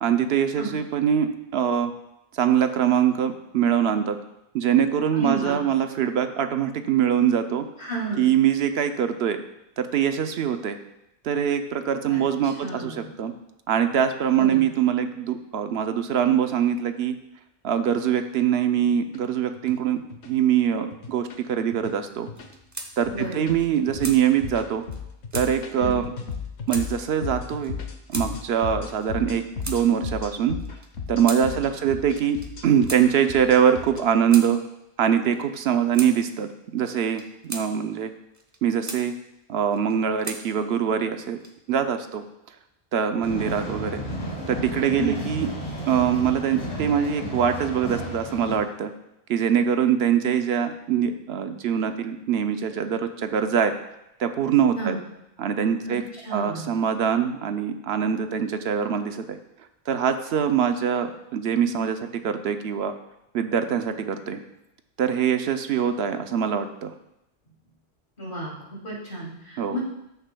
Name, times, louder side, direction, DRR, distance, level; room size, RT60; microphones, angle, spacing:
voice 1, 0.0-1.9 2.3-4.2 4.5-7.7 8.2-9.4 9.8-10.8 11.2-13.3 13.7-17.1 17.6-22.3 23.0-24.8 25.3-26.0 26.7-27.8 28.1-30.6 31.1-34.6 35.0-38.1 38.6-39.1 39.5-41.4 41.7-42.2 42.9-44.0 44.5-45.5 45.9-48.9 49.3-53.7 54.2-55.0 55.4-56.0 56.3-59.4 59.9-62.9 63.3-64.4 65.0-66.9 69.6-69.8, right 8 dB, 70° right, 8 dB, 0.9 m, -23 dB
voice 2, 5.1-5.6 7.8-8.3 12.1-12.2 12.6-13.1 14.4-14.6 23.1-23.6 25.8-26.0 31.5-31.6 44.9-45.2 54.8-55.0 55.8-56.0 56.2-56.7 68.2-69.8, right 2 dB, 50° left, -4 dB, 2.7 m, -32 dB
sound 1, 18.8-19.2 19.6-19.7 20.1-20.3 20.9-21.4 21.7-21.9 22.3-22.6 23.0-34.0, left 6 dB, 80° left, 1.1 m, -35 dB
sound 2, 22.3-22.9 23.2-23.3 23.6-24.2 24.9-25.0 25.3-25.5 26.3-26.4 26.7-26.9 27.6-27.7 28.1-28.3 29.0-29.8 30.6-31.4 32.2-32.5 32.9-33.0 33.8-34.5 35.3-35.5 35.9-36.1 37.0-37.7 38.3-39.0 39.7-40.4 41.2-41.7, right 2 dB, 20° right, 0.6 m, -36 dB
sound 3, 43.2-48.6, equal, 30° left, 1.5 m, -33 dB
13.0 x 6.7 x 2.2 m, 0.86 s
omnidirectional pair, 1.1 m